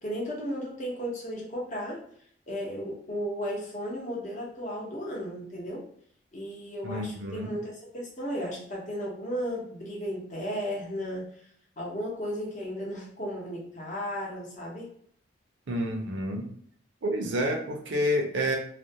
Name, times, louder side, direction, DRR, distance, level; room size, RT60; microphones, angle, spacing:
voice 1, 0.0-2.1 2.5-5.9 6.3-11.5 11.8-14.9, equal, 40° left, -3 dB, 0.7 m, -34 dB
voice 2, 6.8-7.5 15.7-16.5 17.0-18.6, equal, 80° right, 1 dB, 0.6 m, -29 dB
2.4 x 2.1 x 2.7 m, 0.63 s
head